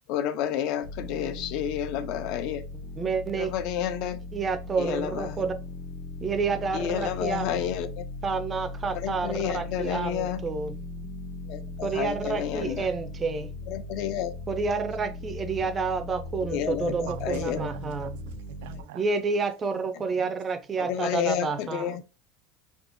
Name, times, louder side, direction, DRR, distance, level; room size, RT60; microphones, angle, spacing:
voice 1, 0.1-2.6 3.4-4.2 4.8-5.5 6.7-8.1 8.9-10.4 11.5-12.9 13.7-14.3 16.5-17.7 20.8-22.0, left 10 dB, 55° left, 0.4 m, -30 dB
sound 1, 0.8-18.8, left 2 dB, 75° left, 1.0 m, -39 dB
voice 2, 3.0-3.5 4.3-5.5 6.2-7.6 8.2-10.8 11.8-13.5 14.5-18.1 18.9-22.0, right 4 dB, 20° right, 0.4 m, -29 dB
voice 3, 16.8-19.0 20.0-20.3 20.8-21.0 21.4-22.0, right 14 dB, 80° right, 0.3 m, -42 dB
3.7 x 2.9 x 2.5 m
supercardioid pair, 155°, 0 cm